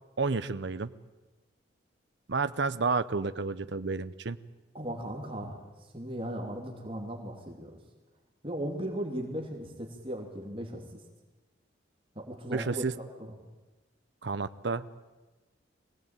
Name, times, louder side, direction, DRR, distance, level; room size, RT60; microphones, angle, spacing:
voice 1, 0.2-0.9 2.3-4.4 12.5-12.9 14.2-14.8, right 4 dB, 65° right, 12 dB, 0.8 m, -30 dB
voice 2, 4.7-5.6 5.9-7.7 8.4-10.8 12.1-12.8 13.2-13.3, right 1 dB, 30° right, 1 dB, 2.9 m, -37 dB
24.0 x 17.5 x 9.0 m, 1.1 s
head